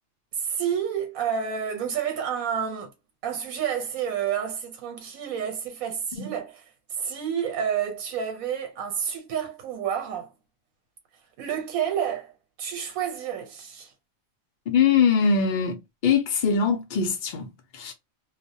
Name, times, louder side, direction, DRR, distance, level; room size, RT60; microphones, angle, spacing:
voice 1, 0.3-2.9 3.2-6.6 6.9-10.3 11.4-12.3 12.6-13.9, right 8 dB, 85° right, 1.1 m, -29 dB
voice 2, 14.7-17.9, left 6 dB, 85° left, 0.4 m, -23 dB
2.4 x 2.0 x 2.5 m
omnidirectional pair, 1.5 m